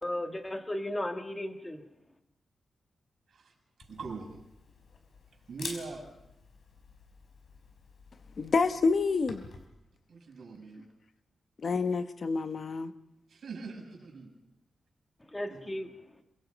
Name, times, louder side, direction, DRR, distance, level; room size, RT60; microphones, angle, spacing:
voice 1, 0.0-1.8 15.3-16.2, left 1 dB, 15° left, 6 dB, 1.8 m, -35 dB
Camera, 3.8-9.6, left 4 dB, 75° left, 4.7 m, -48 dB
voice 2, 3.8-4.4 5.5-6.0 10.1-10.9 13.3-14.3 15.5-15.6, right 4 dB, 70° right, 3 dB, 6.8 m, -42 dB
voice 3, 8.4-9.4 11.6-12.9, left 4 dB, 50° left, 10 dB, 1.1 m, -28 dB
26.0 x 23.5 x 5.3 m, 0.89 s
wide cardioid pair, 140°, 0 cm